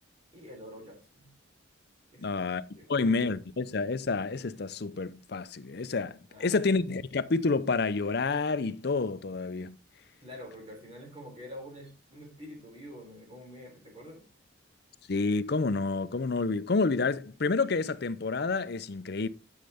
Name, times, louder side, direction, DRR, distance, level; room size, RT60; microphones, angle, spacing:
voice 1, 0.3-1.3 2.1-3.1 6.3-6.7 10.2-14.3, equal, 30° right, 3.9 m, -47 dB
voice 2, 2.2-2.6 2.9-9.8 15.1-19.3, left 3 dB, 55° left, 0.6 m, -29 dB
12.0 x 6.5 x 3.5 m
head